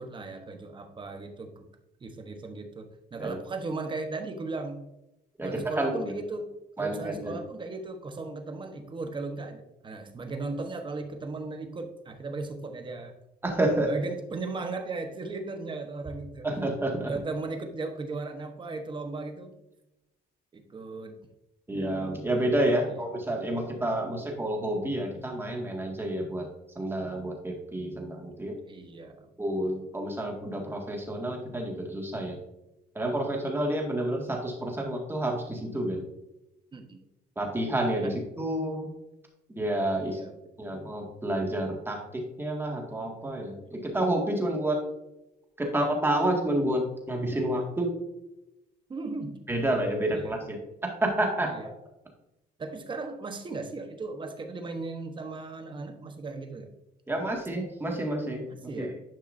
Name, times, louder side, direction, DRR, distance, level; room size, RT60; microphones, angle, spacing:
voice 1, 0.0-1.7 2.0-4.8 5.4-6.5 6.8-13.1 13.8-16.5 17.0-19.5 20.5-21.2 22.8-23.0 28.7-29.3 36.7-37.0 38.0-38.1 40.0-40.4 40.7-40.8 48.9-49.4 50.1-50.4 51.4-51.7 52.6-56.7 58.7-59.0, right 3 dB, 30° right, 5 dB, 1.1 m, -37 dB
voice 2, 5.4-6.1 6.8-7.4 13.4-13.9 16.4-17.1 21.7-26.5 26.8-28.5 29.4-32.4 33.0-36.0 37.4-38.9 39.5-40.2 40.6-44.8 45.6-47.9 49.5-50.6 51.0-51.5 57.1-58.4 58.8-58.9, right 1 dB, 15° right, 1 dB, 1.9 m, -29 dB
10.5 x 5.5 x 2.6 m, 0.92 s
cardioid pair, 110°, 17 cm